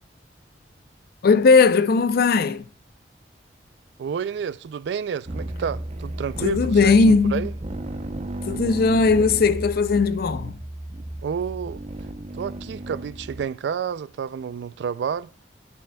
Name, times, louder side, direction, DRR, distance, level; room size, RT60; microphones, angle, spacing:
voice 1, 1.2-2.7 6.4-7.5 8.4-10.6, left 4 dB, 60° left, 0.4 m, -18 dB
voice 2, 4.0-7.5 11.2-11.8 12.3-15.3, right 7 dB, 70° right, 0.3 m, -30 dB
sound 1, 5.3-13.4, right 1 dB, 40° right, 0.7 m, -33 dB
10.0 x 9.0 x 2.2 m
head